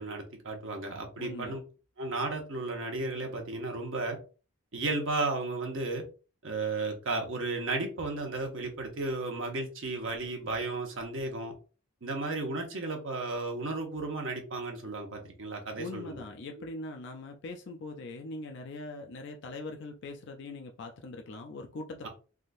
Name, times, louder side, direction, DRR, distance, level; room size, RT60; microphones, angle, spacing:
voice 1, 0.0-1.6 2.0-4.2 4.7-6.0 6.4-11.5 12.0-16.2, right 2 dB, 65° right, 0.9 m, -34 dB
voice 2, 1.2-1.6 15.8-22.1, left 2 dB, 55° left, 0.4 m, -41 dB
3.6 x 2.5 x 2.6 m
head